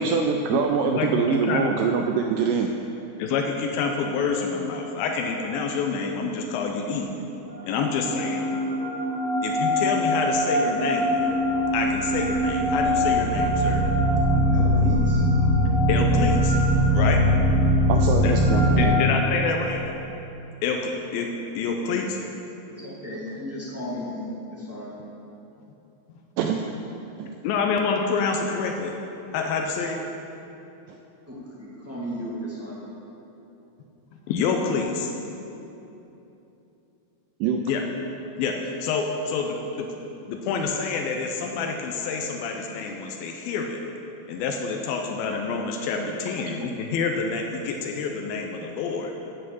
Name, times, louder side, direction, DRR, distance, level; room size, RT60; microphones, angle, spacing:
voice 1, 0.0-2.7 17.9-18.9 26.4-26.7 27.2-27.3 37.4-37.7, right 6 dB, 80° right, 4 dB, 1.9 m, -24 dB
voice 2, 1.0-1.7 3.2-7.1 7.7-8.4 9.4-11.2 11.7-13.8 15.9-16.6 16.9-17.2 18.2-18.3 18.7-19.8 20.6-21.3 21.6-22.2 27.4-29.0 29.3-30.0 34.3-35.1 37.7-37.8 38.4-39.9 40.3-43.8 44.3-49.1, left 5 dB, 85° left, 2 dB, 2.5 m, -27 dB
sound 1, 7.5-18.9, equal, 65° right, 3.8 m, -22 dB
voice 3, 14.5-15.2 22.8-24.9 31.3-32.8, equal, 10° right, -7 dB, 0.7 m, -34 dB
11.5 x 5.6 x 7.6 m, 3.0 s
omnidirectional pair, 4.2 m